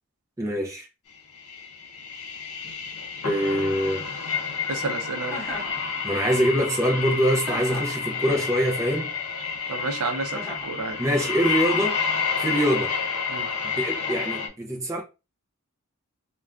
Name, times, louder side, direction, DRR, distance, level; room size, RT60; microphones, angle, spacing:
voice 1, 0.4-0.8 3.2-4.1 6.0-9.1 11.0-12.0 12.4-12.9 13.7-15.0, equal, 15° right, 0.5 m, -24 dB
sound 1, 1.3-14.5, left 5 dB, 70° left, 0.6 m, -30 dB
voice 2, 4.7-5.4 9.7-11.0 13.3-13.5, right 3 dB, 70° right, 0.6 m, -30 dB
Chuckle chortle, 5.3-5.8 7.4-8.0 10.3-10.7, left 1 dB, 5° left, 1.5 m, -35 dB
3.3 x 2.2 x 2.4 m
head